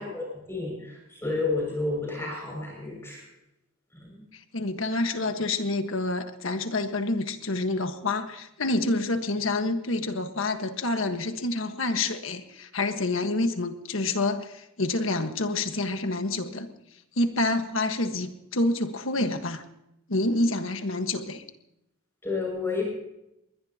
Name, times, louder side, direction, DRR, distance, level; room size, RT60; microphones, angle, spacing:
voice 1, 0.0-3.2 4.0-4.2 22.2-22.8, left 3 dB, 15° left, -2 dB, 6.4 m, -31 dB
voice 2, 4.5-16.7 17.2-19.6 20.1-21.4, left 2 dB, 75° left, 7 dB, 1.5 m, -28 dB
21.5 x 20.5 x 2.9 m, 0.84 s
head